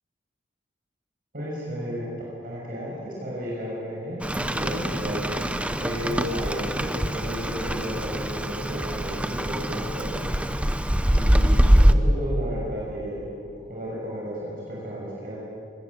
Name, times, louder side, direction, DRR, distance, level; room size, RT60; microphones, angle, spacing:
voice 1, 1.3-2.1 2.4-10.1 11.1-15.4, equal, 55° right, -5 dB, 6.6 m, -33 dB
Rain, 4.2-11.9, equal, 5° right, 0.8 m, -23 dB
24.0 x 19.5 x 8.7 m, 2.3 s
head